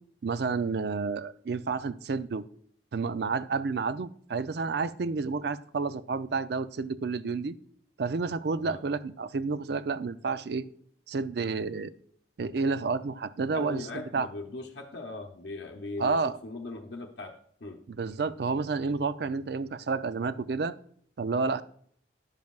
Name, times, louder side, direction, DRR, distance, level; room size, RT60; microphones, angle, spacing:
voice 1, 0.2-2.5 2.9-7.5 8.0-10.6 11.1-11.9 12.4-14.3 16.0-16.4 18.0-20.7 21.2-21.6, right 4 dB, 60° right, 14 dB, 0.4 m, -30 dB
voice 2, 13.5-17.8, left 3 dB, 70° left, 1 dB, 0.8 m, -39 dB
10.5 x 7.3 x 2.3 m, 0.63 s
head